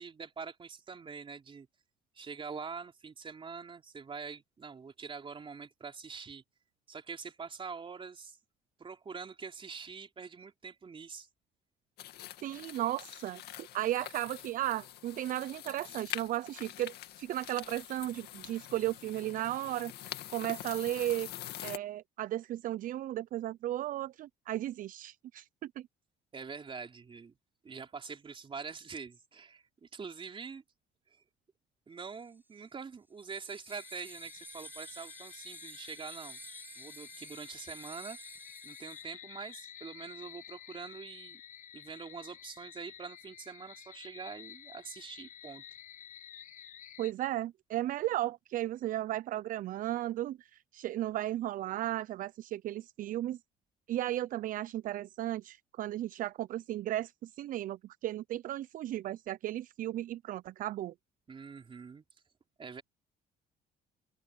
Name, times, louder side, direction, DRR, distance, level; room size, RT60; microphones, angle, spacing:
voice 1, 0.0-1.7 2.2-6.4 6.9-8.4 8.8-11.3 26.3-27.4 27.6-30.6 31.9-36.4 36.8-38.2 38.6-41.4 41.7-45.6 61.3-62.0 62.6-62.8, right 5 dB, 30° right, 3.5 m, -45 dB
sound 1, 12.0-21.8, left 13 dB, 75° left, 2.2 m, -45 dB
voice 2, 12.4-19.9 20.3-21.3 21.6-25.9 47.0-53.4 53.9-60.9, right 14 dB, 55° right, 0.4 m, -35 dB
sound 2, 32.0-32.4 33.2-39.0, right 2 dB, 10° right, 7.9 m, -51 dB
sound 3, 33.7-47.1, left 10 dB, 50° left, 1.0 m, -51 dB
open air
cardioid pair, 110°, 17 cm